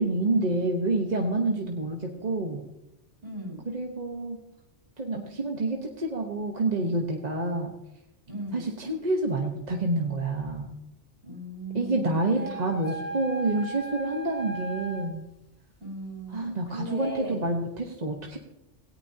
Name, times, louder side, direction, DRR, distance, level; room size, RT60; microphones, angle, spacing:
voice 1, 0.0-2.6 3.7-4.4 5.0-7.7 8.5-10.8 11.7-15.3 16.3-18.4, right 2 dB, 40° right, 1 dB, 1.2 m, -28 dB
voice 2, 3.2-3.6 8.3-8.7 11.2-12.5 12.9-13.2 15.8-17.4, right 1 dB, 55° right, -2 dB, 4.8 m, -38 dB
sound 1, 12.4-15.1, right 3 dB, 15° left, 0.9 m, -37 dB
17.5 x 17.5 x 2.8 m, 0.93 s
omnidirectional pair, 1.2 m